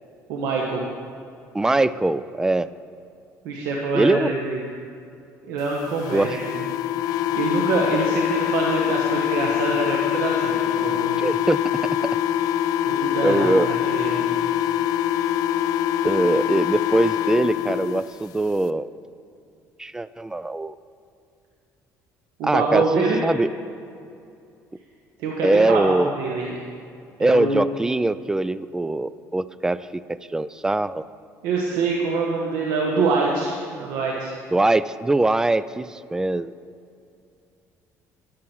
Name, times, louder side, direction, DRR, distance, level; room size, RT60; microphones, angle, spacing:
voice 1, 0.3-0.8 3.4-4.6 5.5-6.6 7.0-7.1 7.3-11.2 12.8-14.3 22.4-23.2 25.2-26.5 27.2-27.6 31.4-34.4, right 3 dB, 90° right, -2 dB, 1.5 m, -25 dB
voice 2, 1.5-2.7 3.9-4.3 6.1-6.3 11.2-11.6 13.2-13.7 16.0-18.9 19.8-20.8 22.4-23.5 25.4-26.1 27.2-31.0 34.5-36.5, right 2 dB, 10° right, 16 dB, 0.3 m, -22 dB
sound 1, 5.9-18.0, left 11 dB, 75° left, 0.4 m, -24 dB
13.5 x 11.0 x 4.6 m, 2.5 s
cardioid pair, 115°, 6 cm